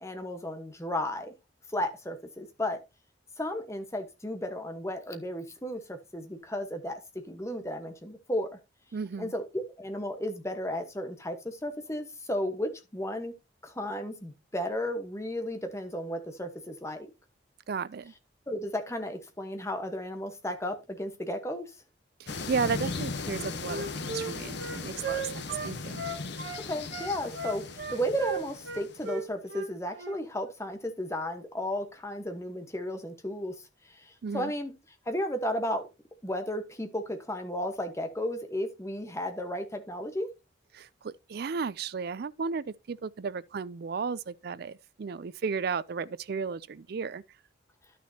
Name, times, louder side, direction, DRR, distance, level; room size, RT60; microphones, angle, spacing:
voice 1, 0.0-1.3 1.7-2.8 3.4-7.0 7.3-8.6 9.2-9.4 9.8-13.3 13.6-17.1 18.5-21.7 26.7-34.7 35.1-35.9 36.2-40.3, left 1 dB, 15° left, 1.1 m, -34 dB
voice 2, 8.9-9.3 17.7-18.1 22.2-26.0 34.2-34.5 40.7-47.2, right 5 dB, 55° right, 0.4 m, -34 dB
sound 1, 22.3-29.2, left 3 dB, 60° left, 0.9 m, -38 dB
Wind instrument woodwind instrument, 23.2-26.6 26.9-30.2, right 4 dB, 80° right, 1.4 m, -36 dB
12.0 x 6.2 x 2.8 m
head